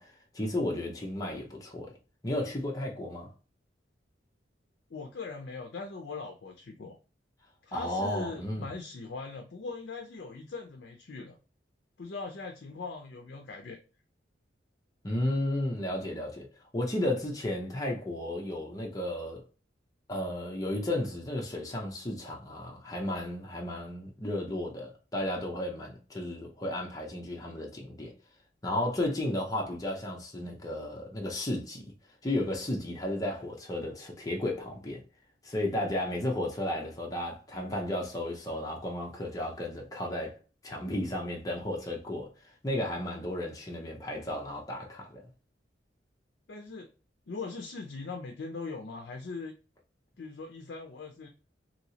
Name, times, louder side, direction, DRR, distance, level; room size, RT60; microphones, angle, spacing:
voice 1, 0.0-1.9 2.2-3.3 7.7-8.7 15.0-16.5 16.7-19.4 20.1-28.1 28.6-31.9 32.2-35.0 35.4-40.4 40.6-42.3 42.6-45.3, left 1 dB, 20° left, 0.6 m, -33 dB
voice 2, 4.9-7.0 7.6-11.4 12.0-13.8 46.5-46.9 47.3-49.5 50.2-51.3, left 4 dB, 60° left, 0.5 m, -40 dB
3.0 x 2.8 x 2.8 m
head